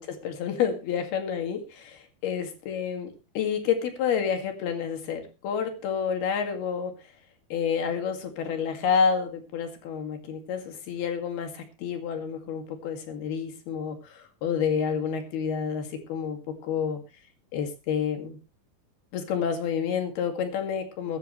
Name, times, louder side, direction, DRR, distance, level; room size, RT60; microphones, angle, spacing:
voice 1, 0.0-3.1 3.4-6.9 7.5-17.0 17.5-18.4 19.1-21.2, left 7 dB, 80° left, 5 dB, 4.3 m, -29 dB
22.5 x 10.0 x 3.2 m, 0.29 s
omnidirectional pair, 4.4 m